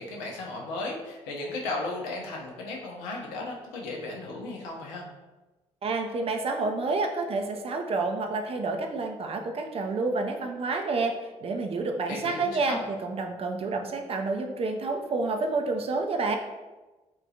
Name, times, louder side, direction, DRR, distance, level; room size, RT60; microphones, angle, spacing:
voice 1, 0.0-5.1 12.1-12.8, left 2 dB, 75° left, -1 dB, 0.6 m, -35 dB
voice 2, 5.8-16.4, right 3 dB, 40° right, 4 dB, 0.5 m, -29 dB
3.6 x 2.4 x 2.7 m, 1.2 s
figure-of-eight pair, 40°, 16 cm